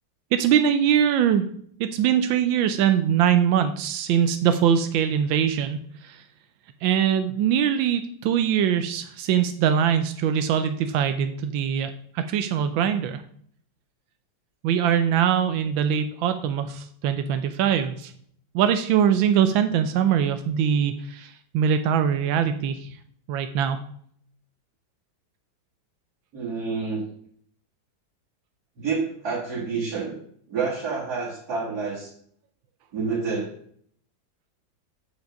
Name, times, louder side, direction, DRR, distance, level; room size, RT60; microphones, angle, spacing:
voice 1, 0.3-1.5 1.8-6.2 6.8-13.2 14.6-18.1 18.5-22.9 23.3-23.8, right 8 dB, 85° right, 9 dB, 1.4 m, -22 dB
voice 2, 26.3-27.1 28.8-30.1 30.5-32.1 32.9-33.6, right 4 dB, 55° right, -6 dB, 2.2 m, -28 dB
8.4 x 4.9 x 5.2 m, 0.62 s
omnidirectional pair, 2.1 m